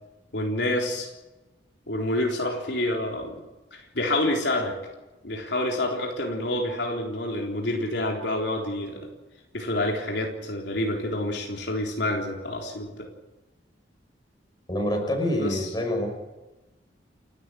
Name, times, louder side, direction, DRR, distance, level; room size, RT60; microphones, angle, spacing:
voice 1, 0.3-1.1 1.9-3.4 3.7-4.8 5.2-9.1 9.5-13.1 15.4-15.7, left 1 dB, 70° left, 1 dB, 3.9 m, -28 dB
voice 2, 14.7-16.1, left 1 dB, 25° left, 2 dB, 6.0 m, -26 dB
29.5 x 13.0 x 8.4 m, 1.1 s
head